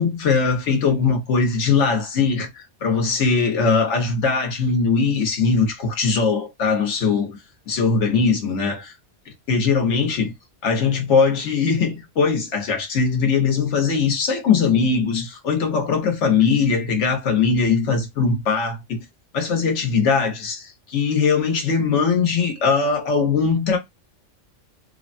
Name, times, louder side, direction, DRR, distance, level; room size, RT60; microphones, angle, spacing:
voice 1, 0.0-7.4 7.7-8.9 9.5-10.3 10.6-19.0 19.3-23.8, left 5 dB, 70° left, 1.2 m, -20 dB
3.3 x 2.1 x 2.5 m
omnidirectional pair, 1.3 m